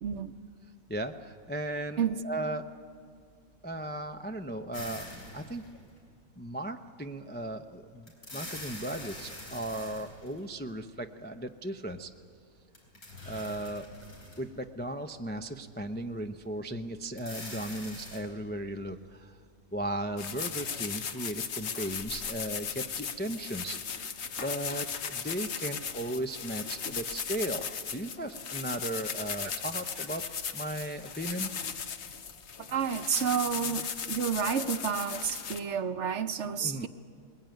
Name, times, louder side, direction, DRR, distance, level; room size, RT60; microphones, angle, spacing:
voice 1, 0.0-0.3 2.0-2.2 32.7-36.9, right 7 dB, 60° right, 11 dB, 1.0 m, -30 dB
voice 2, 0.9-2.6 3.6-5.6 6.4-12.1 13.2-13.9 14.4-19.4 19.7-23.8 24.4-27.7 27.9-30.2 30.5-31.5 36.6-36.9, right 1 dB, 15° left, 6 dB, 0.4 m, -36 dB
sound 1, 4.7-6.0 8.1-10.7 12.7-14.6 15.2-15.3 17.1-18.2, left 1 dB, 90° left, 5.0 m, -44 dB
sound 2, 20.2-35.6, left 6 dB, 55° left, 1.1 m, -37 dB
21.5 x 20.5 x 9.1 m, 2.2 s
omnidirectional pair, 1.5 m